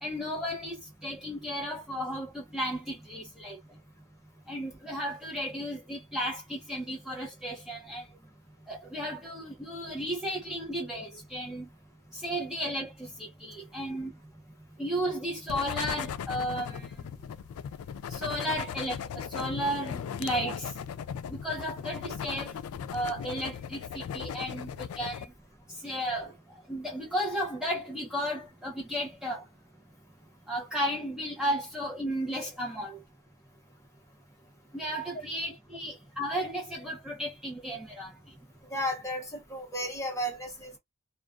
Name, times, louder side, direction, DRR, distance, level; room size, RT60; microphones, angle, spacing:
voice 1, 0.0-3.6 4.5-8.1 8.7-11.7 12.1-14.1 14.8-16.9 18.1-20.7 21.3-22.5 22.9-25.3 25.7-29.5 30.5-33.0 34.7-38.1, equal, 5° right, 0.5 m, -34 dB
sound 1, 15.5-25.3, left 8 dB, 90° left, 0.3 m, -37 dB
voice 2, 38.7-40.8, equal, 15° left, 1.0 m, -34 dB
2.4 x 2.2 x 2.3 m
head